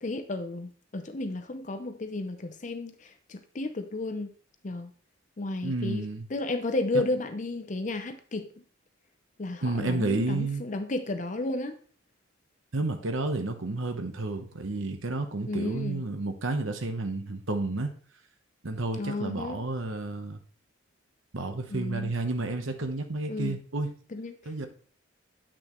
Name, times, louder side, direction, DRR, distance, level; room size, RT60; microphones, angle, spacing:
voice 1, 0.0-4.3 4.6-4.9 5.4-8.5 9.4-11.8 15.5-16.0 19.0-19.6 21.7-22.1 23.3-23.6 24.1-24.3, left 2 dB, 40° left, 0.6 m, -33 dB
voice 2, 5.6-6.3 9.6-10.6 12.7-17.9 18.6-20.4 21.3-23.9 24.4-24.7, right 2 dB, 75° right, 1.0 m, -31 dB
8.7 x 6.1 x 3.0 m
head